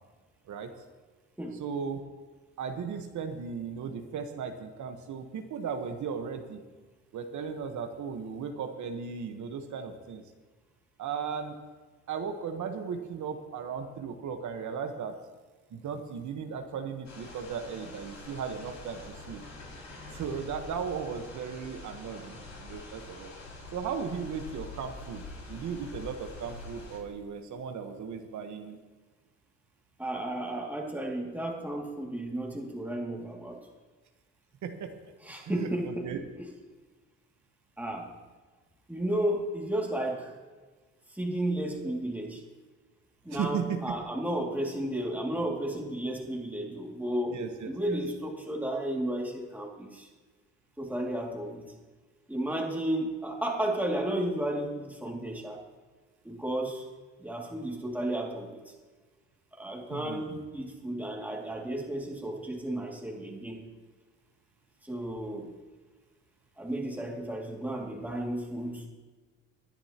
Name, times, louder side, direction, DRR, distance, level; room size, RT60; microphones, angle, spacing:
voice 1, 1.5-2.0 2.6-6.6 7.1-10.2 11.0-11.6 12.1-15.2 15.7-19.4 20.1-23.3 23.7-28.8 34.6-35.0 35.4-36.2 43.3-43.8 47.3-48.0 59.9-60.4, right 6 dB, 70° right, 6 dB, 1.3 m, -36 dB
sound 1, 17.0-27.0, left 2 dB, 70° left, 4.9 m, -45 dB
voice 2, 30.0-33.6 35.2-36.1 37.8-38.1 38.9-40.3 41.1-42.4 43.2-47.4 47.7-50.1 50.8-51.7 52.3-55.6 56.2-56.9 57.2-58.6 59.5-63.7 64.8-65.5 66.6-68.9, right 1 dB, 5° right, -1 dB, 2.4 m, -33 dB
20.5 x 10.5 x 3.0 m, 1.3 s
cardioid pair, 90°, 30 cm